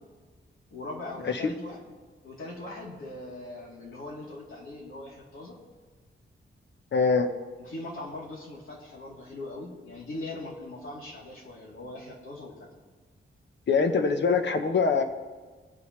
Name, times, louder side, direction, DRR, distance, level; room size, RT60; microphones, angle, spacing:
voice 1, 0.7-1.8 2.2-5.6 7.6-12.7, left 2 dB, 80° left, -4 dB, 3.3 m, -40 dB
voice 2, 1.2-1.5 6.9-7.3 13.7-15.0, left 5 dB, 60° left, 7 dB, 1.1 m, -23 dB
21.5 x 9.2 x 3.3 m, 1.4 s
wide cardioid pair, 170°, 21 cm